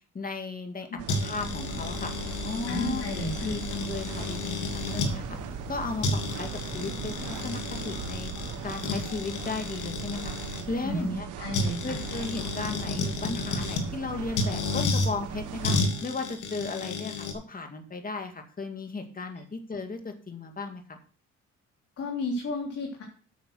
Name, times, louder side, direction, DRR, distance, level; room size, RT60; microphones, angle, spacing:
voice 1, 0.1-0.9 1.2-2.1 2.4-3.0 3.4-5.2 5.7-6.5 6.7-8.3 8.6-10.3 10.7-11.3 11.8-15.8 16.0-21.0, left 3 dB, 30° left, 5 dB, 2.2 m, -35 dB
sound 1, 1.0-15.8, right 8 dB, 85° right, 1.0 m, -39 dB
sound 2, 1.1-5.1 5.7-5.8 6.0-10.6 11.5-13.9 14.4-15.1 15.6-17.3, left 3 dB, 80° left, 2.4 m, -32 dB
sound 3, 1.4-9.6, equal, 25° right, 3.3 m, -41 dB
voice 2, 2.7-3.3 10.8-12.0 22.0-23.0, left 2 dB, 50° left, -1 dB, 3.2 m, -32 dB
9.0 x 6.5 x 6.4 m, 0.40 s
cardioid pair, 90°, 30 cm